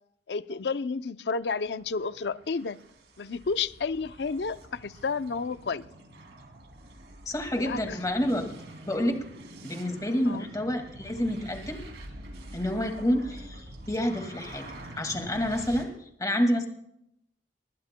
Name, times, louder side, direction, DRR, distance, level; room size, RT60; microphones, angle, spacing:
voice 1, 0.3-2.8 3.2-5.9 7.6-8.0 10.2-10.5, left 4 dB, 70° left, 0.5 m, -31 dB
sound 1, 1.5-15.8, right 1 dB, 75° right, 2.6 m, -46 dB
voice 2, 7.3-8.4 8.8-9.2 9.6-11.8 12.5-14.7 14.9-15.9 16.2-16.7, equal, 20° left, 2.1 m, -28 dB
20.0 x 19.5 x 2.2 m
head